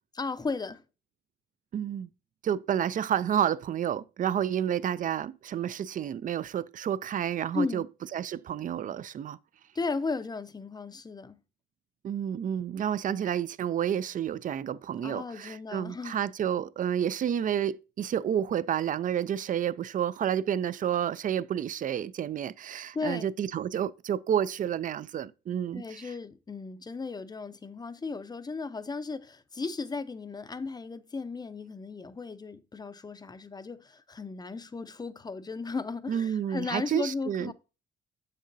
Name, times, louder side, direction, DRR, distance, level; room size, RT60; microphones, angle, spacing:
voice 1, 0.1-0.8 7.5-7.9 9.7-11.4 15.0-16.2 22.9-23.3 25.7-37.5, left 4 dB, 20° left, 0.5 m, -35 dB
voice 2, 1.7-2.1 2.4-7.9 8.1-9.4 12.0-26.1 36.1-37.5, right 9 dB, 40° right, 0.4 m, -30 dB
7.3 x 6.6 x 2.6 m
cardioid pair, 90°, 20 cm